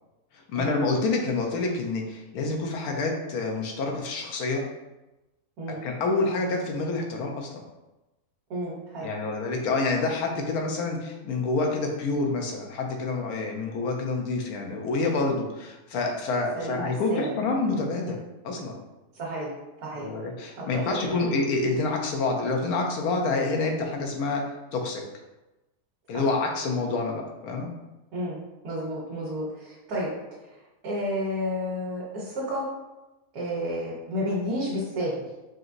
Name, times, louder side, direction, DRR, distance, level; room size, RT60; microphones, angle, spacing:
voice 1, 0.5-4.6 5.8-7.6 9.0-18.8 19.9-24.4 24.7-25.0 26.1-27.7, left 3 dB, 85° left, 1 dB, 1.2 m, -27 dB
voice 2, 8.5-9.1 16.5-17.3 19.1-19.5 19.8-20.1 20.7-21.2 26.1-26.2 28.1-28.4 28.6-30.1 30.8-32.7 33.3-35.1, equal, 90° right, -5 dB, 1.4 m, -31 dB
5.0 x 3.0 x 2.5 m, 1.0 s
omnidirectional pair, 1.5 m